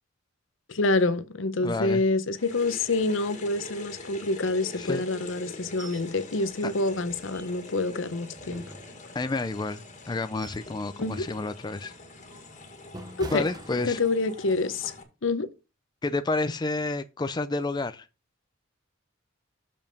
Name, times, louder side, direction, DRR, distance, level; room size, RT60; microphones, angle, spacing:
voice 1, 0.7-8.6 11.0-11.3 13.2-13.5 13.8-14.9 15.2-15.5, left 2 dB, 70° left, 0.8 m, -27 dB
voice 2, 1.6-2.0 4.8-5.1 6.6-6.7 9.1-11.9 13.3-14.0 16.0-18.1, left 3 dB, 20° left, 0.4 m, -30 dB
sound 1, 2.3-15.0, left 2 dB, 35° left, 1.8 m, -44 dB
sound 2, 5.8-6.1 6.4-6.5 7.0-7.9 8.4-9.4 10.0-10.8 11.1-11.4 11.9-14.4 14.8-15.0, right 1 dB, 20° right, 0.9 m, -45 dB
7.0 x 5.4 x 5.3 m
head